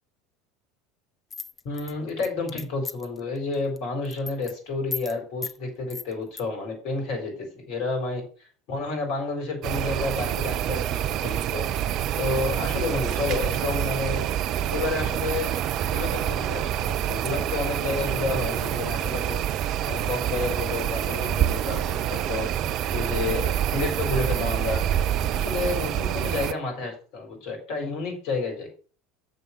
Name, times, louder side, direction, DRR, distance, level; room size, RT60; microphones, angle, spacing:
sound 1, 1.3-3.2 3.5-3.8 4.0-4.5 4.9-5.1 5.4-5.6 5.9-6.4, left 5 dB, 25° left, 0.7 m, -35 dB
voice 1, 1.6-11.7 12.2-14.2 14.7-15.5 15.8-19.4 19.8-22.5 22.9-24.8 25.3-28.7, left 3 dB, 55° left, 3 dB, 4.1 m, -30 dB
sound 2, 9.6-26.5, right 11 dB, 45° right, 0.6 m, -27 dB
7.0 x 6.5 x 7.4 m, 0.40 s
figure-of-eight pair, 75°, 0 cm